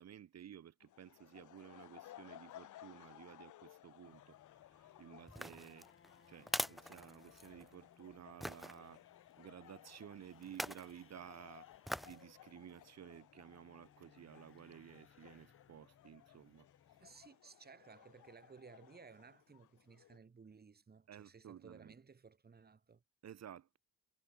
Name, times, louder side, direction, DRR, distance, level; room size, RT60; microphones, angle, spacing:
voice 1, 0.0-4.4 4.7-5.9 6.3-9.0 9.4-11.7 12.0-16.7 21.1-22.0 23.2-23.8, right 9 dB, 60° right, 2.4 m, -54 dB
sound 1, 0.8-20.2, left 14 dB, 75° left, 1.9 m, -60 dB
sound 2, 4.1-17.3, left 7 dB, 45° left, 3.2 m, -68 dB
sound 3, 5.3-7.7 8.4-8.7 10.4-10.9 11.8-12.2 12.7-12.8, equal, ahead, 0.6 m, -42 dB
voice 2, 17.0-23.0, right 5 dB, 30° right, 3.1 m, -59 dB
cardioid pair, 90°, 30 cm